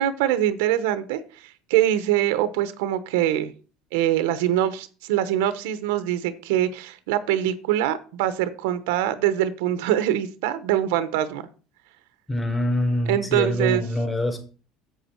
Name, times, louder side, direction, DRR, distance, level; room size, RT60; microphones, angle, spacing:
voice 1, 0.0-3.5 3.9-11.5 13.1-13.8, right 12 dB, 85° right, 12 dB, 0.9 m, -23 dB
voice 2, 12.3-14.4, left 1 dB, 10° left, 3 dB, 4.2 m, -24 dB
8.3 x 8.0 x 4.5 m, 0.36 s
supercardioid pair, 115°, 0 cm